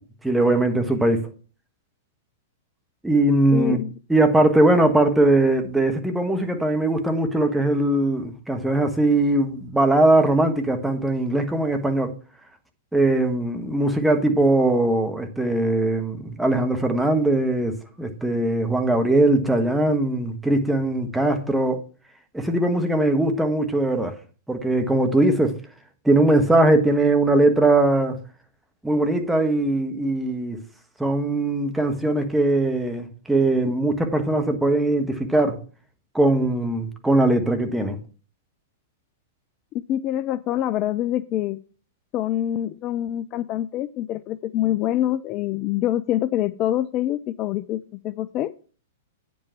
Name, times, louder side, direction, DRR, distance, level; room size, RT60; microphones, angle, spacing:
voice 1, 0.2-1.3 3.0-3.8 4.1-12.1 12.9-21.8 22.3-24.1 24.5-25.5 26.0-28.2 28.8-30.6 31.0-35.6 36.1-38.0, right 2 dB, 5° right, 1.4 m, -20 dB
voice 2, 3.5-3.9 39.7-41.6 42.1-48.5, left 12 dB, 35° left, 0.4 m, -25 dB
9.3 x 5.3 x 5.8 m
figure-of-eight pair, 105°, 0 cm